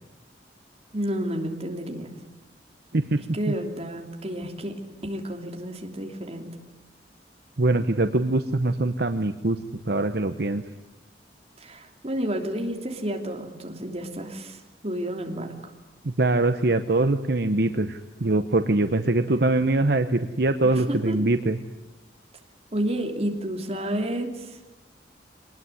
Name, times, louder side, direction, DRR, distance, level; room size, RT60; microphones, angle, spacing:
voice 1, 0.9-2.1 3.3-6.5 11.6-15.5 20.6-21.2 22.7-24.6, right 1 dB, 35° right, 3 dB, 3.0 m, -31 dB
voice 2, 7.6-9.6 9.9-10.6 16.0-21.6, right 2 dB, 60° right, 9 dB, 0.9 m, -23 dB
23.5 x 19.5 x 9.8 m, 1.0 s
head